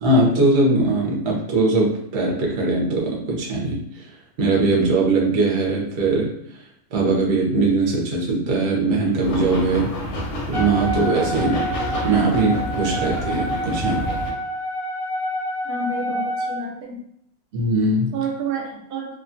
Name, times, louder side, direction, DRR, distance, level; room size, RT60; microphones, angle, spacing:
voice 1, 0.0-4.0 4.4-6.3 6.9-9.9 10.5-11.7 12.0-14.1 17.5-18.1, right 2 dB, 55° right, -3 dB, 0.9 m, -20 dB
sound 1, 9.2-14.3, left 1 dB, 65° left, 0.8 m, -29 dB
Wind instrument woodwind instrument, 10.5-16.6, equal, 30° right, 0.5 m, -28 dB
voice 2, 15.6-17.0 18.1-19.2, right 4 dB, 85° right, 0 dB, 1.1 m, -29 dB
2.8 x 2.2 x 2.5 m, 0.72 s
omnidirectional pair, 1.6 m